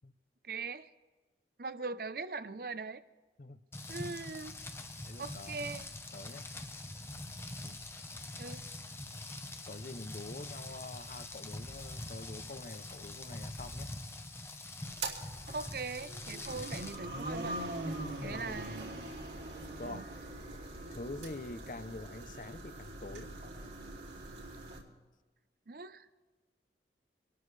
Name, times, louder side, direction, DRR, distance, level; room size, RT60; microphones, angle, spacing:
voice 1, 0.4-0.9 1.6-3.0 3.9-4.5 5.2-5.8 8.4-8.6 15.5-17.6 18.2-18.9 19.8-20.0 25.7-26.1, right 4 dB, 55° right, 13 dB, 0.6 m, -41 dB
Rain, 3.7-16.9, left 2 dB, 15° left, 0.8 m, -44 dB
voice 2, 5.1-5.6 6.1-6.4 7.6-7.8 9.6-13.9 18.0-18.6 19.8-20.1 20.9-23.3, left 2 dB, 45° left, 13 dB, 0.6 m, -46 dB
sound 1, 14.8-24.8, right 2 dB, 80° right, 2.8 m, -42 dB
26.0 x 12.5 x 3.2 m, 1.2 s
head